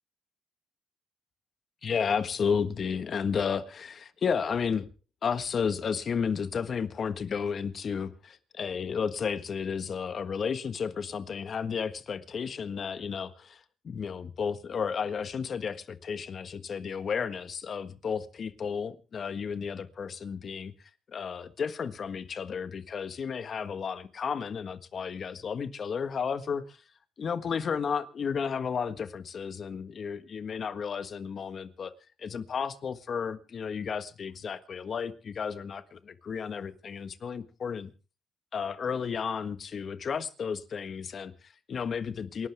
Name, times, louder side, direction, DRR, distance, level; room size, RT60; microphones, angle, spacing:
voice 1, 1.8-4.9 5.2-20.7 21.1-26.8 27.2-31.9 32.2-37.9 38.5-42.5, left 6 dB, 50° left, 1.4 m, -33 dB
27.5 x 12.0 x 3.5 m
cardioid pair, 90°, 0 cm